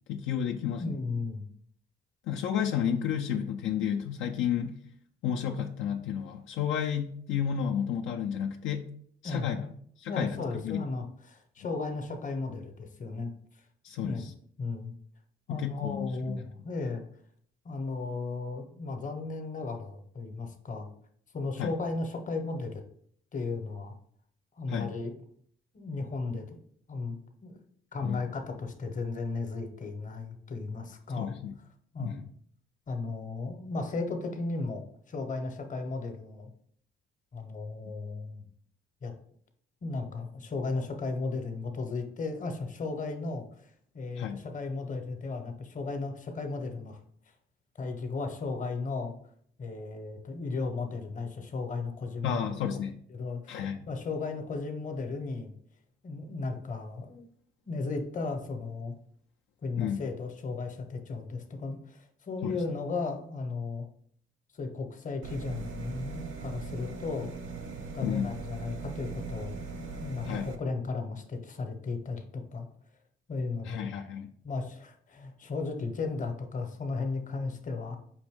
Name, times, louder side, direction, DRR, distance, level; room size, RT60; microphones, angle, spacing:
voice 1, 0.1-1.0 2.3-4.8 5.2-8.9 9.2-10.8 13.8-14.3 15.5-16.4 21.6-21.7 24.7-24.9 28.0-28.2 31.2-31.5 32.0-32.3 44.2-44.4 52.2-53.0 53.5-53.8 59.8-60.0 62.4-62.6 68.0-68.3 70.2-70.5 73.6-74.3, left 8 dB, 75° left, 2 dB, 0.4 m, -32 dB
voice 2, 0.8-1.5 9.2-9.5 10.1-13.3 14.0-14.3 14.6-14.9 15.5-17.0 17.6-20.9 21.3-22.8 23.3-23.9 24.6-25.1 25.7-26.6 26.9-27.6 27.9-31.3 31.9-32.2 32.9-36.5 37.3-38.4 39.0-39.1 39.8-43.5 43.9-47.0 47.8-49.1 49.6-52.5 53.1-55.5 56.0-57.2 57.6-58.9 59.6-63.9 64.5-67.3 67.9-72.7 73.3-73.9 74.4-78.0, left 3 dB, 40° left, 5 dB, 0.8 m, -35 dB
sound 1, 65.2-70.6, right 4 dB, 75° right, 0.6 m, -40 dB
5.2 x 2.6 x 3.5 m, 0.62 s
cardioid pair, 90°, 20 cm